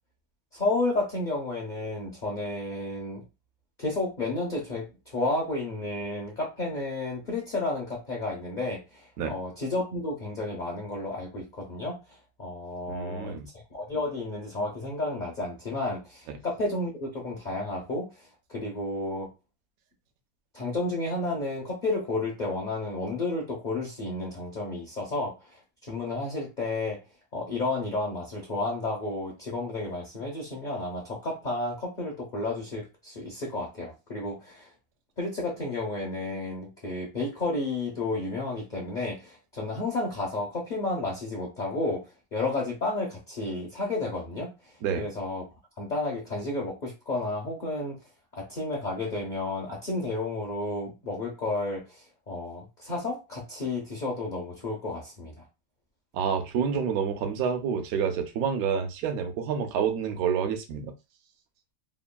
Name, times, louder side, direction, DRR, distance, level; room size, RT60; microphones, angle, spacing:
voice 1, 0.5-3.2 3.8-12.0 12.4-13.4 13.7-18.1 18.5-19.3 20.5-25.3 25.8-27.0 27.3-34.7 35.2-42.1 42.3-44.5 45.0-45.4 45.8-48.0 48.3-55.3, left 2 dB, 50° left, -3 dB, 0.5 m, -31 dB
voice 2, 12.9-13.5 16.3-16.4 44.8-45.0 56.1-60.9, right 7 dB, 70° right, 6 dB, 1.0 m, -28 dB
3.3 x 2.2 x 2.2 m, 0.26 s
omnidirectional pair, 1.9 m